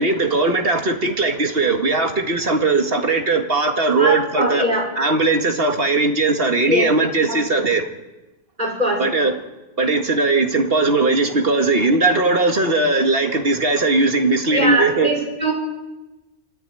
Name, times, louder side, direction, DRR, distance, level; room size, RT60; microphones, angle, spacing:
voice 1, 0.0-4.7 5.0-7.9 9.0-9.4 9.8-15.1, right 3 dB, 50° right, 4 dB, 2.1 m, -19 dB
voice 2, 4.0-4.9 6.7-6.9 7.3-7.7 8.6-9.0 14.5-15.5, right 1 dB, 35° right, -1 dB, 6.1 m, -21 dB
24.0 x 14.0 x 9.0 m, 1.0 s
omnidirectional pair, 1.3 m